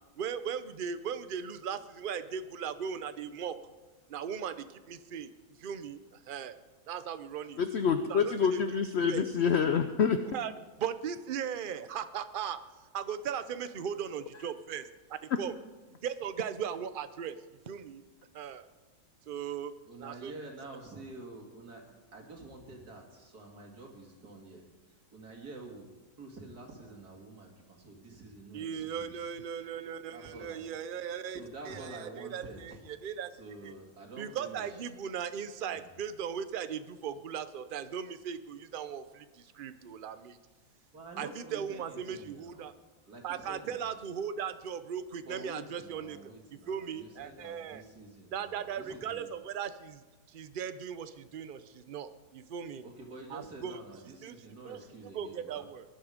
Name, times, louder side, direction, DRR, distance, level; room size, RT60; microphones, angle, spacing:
voice 1, 0.2-3.6 4.1-5.3 5.6-6.0 6.3-6.6 6.9-7.6 8.1-8.6 9.1-9.2 10.3-10.5 10.8-12.6 12.9-14.8 15.1-15.5 16.0-17.4 17.7-18.0 18.3-18.7 19.3-19.7 20.0-20.3 28.5-31.4 31.7-33.3 33.6-33.7 34.2-40.4 41.2-42.7 43.2-46.2 46.7-47.8 48.3-50.0 50.3-52.8 53.3-53.8 54.2-54.3 54.6-54.8 55.1-55.8, right 8 dB, 50° right, 11 dB, 0.6 m, -38 dB
voice 2, 7.6-10.3, left 6 dB, 55° left, 9 dB, 0.8 m, -27 dB
voice 3, 19.8-21.8 22.1-24.7 25.1-25.9 26.2-29.3 30.1-30.7 31.3-32.8 33.3-34.8 35.7-35.9 40.9-42.8 43.1-44.0 45.2-49.3 52.8-55.7, right 2 dB, 70° right, 1 dB, 2.9 m, -48 dB
20.0 x 11.5 x 5.1 m, 1.3 s
omnidirectional pair, 1.7 m